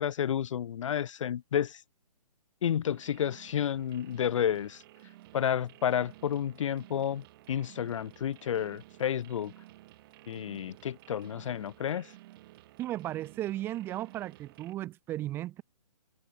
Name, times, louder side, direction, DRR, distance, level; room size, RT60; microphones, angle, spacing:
voice 1, 0.0-1.8 2.6-4.8 5.3-9.5 10.3-12.1, left 9 dB, 50° left, 0.5 m, -31 dB
sound 1, 2.9-14.8, right 17 dB, 35° right, 4.6 m, -54 dB
voice 2, 12.8-15.6, right 14 dB, 10° right, 0.4 m, -35 dB
figure-of-eight pair, 140°, 20 cm